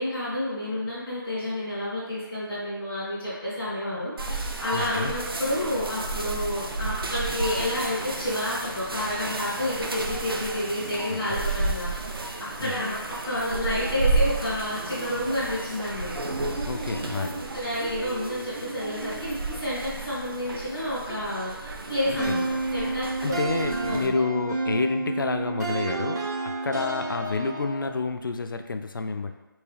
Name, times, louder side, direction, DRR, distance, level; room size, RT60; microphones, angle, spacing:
voice 1, 0.0-16.2 17.5-23.4 23.7-24.1, left 1 dB, 5° left, -16 dB, 0.5 m, -30 dB
sound 1, 4.2-24.1, right 3 dB, 90° right, 0.5 m, -32 dB
voice 2, 4.7-5.1 11.1-11.2 12.6-12.7 16.7-17.5 22.0-22.2 23.0-29.3, left 4 dB, 65° left, 7 dB, 0.4 m, -29 dB
sound 2, 22.2-28.0, right 2 dB, 50° right, 1.1 m, -30 dB
3.6 x 2.7 x 3.3 m, 1.1 s
figure-of-eight pair, 180°, 12 cm